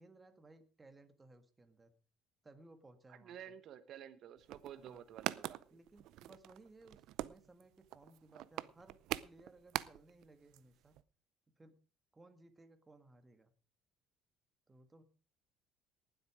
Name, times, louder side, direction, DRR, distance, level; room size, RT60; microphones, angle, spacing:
voice 1, 0.0-1.9 2.4-3.5 4.7-5.1 5.7-9.0 9.2-11.0 11.6-11.7 12.1-13.5 14.7-15.0, right 2 dB, 15° right, 7 dB, 1.9 m, -61 dB
voice 2, 3.1-5.8, right 9 dB, 55° right, 11 dB, 1.2 m, -52 dB
sound 1, 4.4-10.3 10.5-10.6 10.8-11.0, right 15 dB, 70° right, 0.6 m, -43 dB
19.0 x 8.1 x 5.0 m, 0.39 s
cardioid pair, 120°, 0 cm